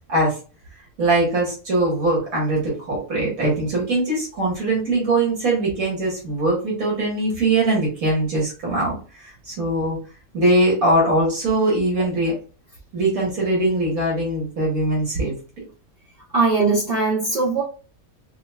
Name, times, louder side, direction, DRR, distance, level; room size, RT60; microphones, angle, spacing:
voice 1, 1.0-10.0 10.3-12.3 12.9-15.3, right 2 dB, 70° right, -4 dB, 1.9 m, -21 dB
voice 2, 16.3-17.6, right 3 dB, 45° right, -5 dB, 1.0 m, -20 dB
5.2 x 2.1 x 2.2 m, 0.36 s
omnidirectional pair, 1.5 m